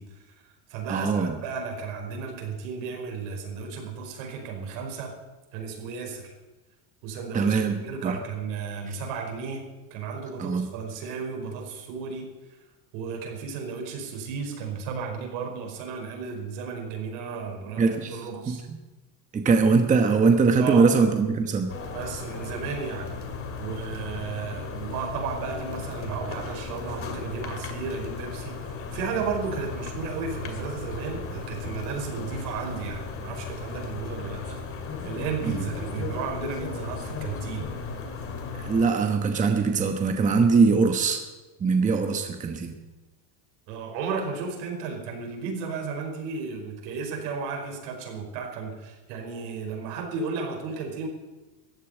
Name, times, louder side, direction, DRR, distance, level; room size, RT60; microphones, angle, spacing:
voice 1, 0.0-5.1 5.5-6.3 7.0-9.6 9.9-12.6 12.9-18.6 20.6-20.9 21.9-23.1 23.6-34.6 35.0-37.7 43.7-51.1, right 5 dB, 70° right, 2 dB, 5.1 m, -34 dB
voice 2, 0.9-1.3 7.3-7.8 8.0-8.2 10.4-10.6 17.8-18.2 18.5-18.6 19.3-21.7 38.5-41.2 41.6-42.7, right 4 dB, 15° right, 5 dB, 1.1 m, -21 dB
sound 1, 21.7-38.9, left 4 dB, 25° left, 2.1 m, -36 dB
14.5 x 8.5 x 9.9 m, 1.1 s
supercardioid pair, 150°, 50 cm